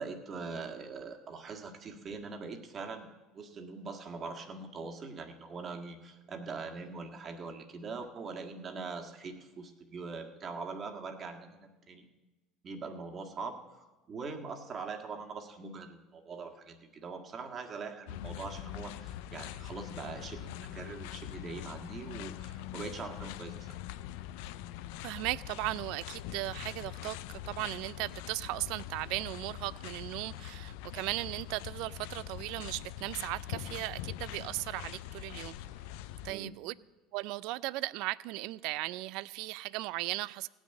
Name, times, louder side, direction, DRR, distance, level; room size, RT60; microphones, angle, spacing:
voice 1, 0.0-3.1 3.3-12.1 12.6-23.7 36.3-36.5, right 4 dB, 40° right, 1.7 m, -42 dB
sound 1, 18.1-36.3, left 12 dB, 75° left, 0.4 m, -43 dB
voice 2, 25.0-35.6 36.2-36.7 37.1-40.5, right 19 dB, 70° right, 0.4 m, -37 dB
16.5 x 6.2 x 9.1 m
supercardioid pair, 90°, 0 cm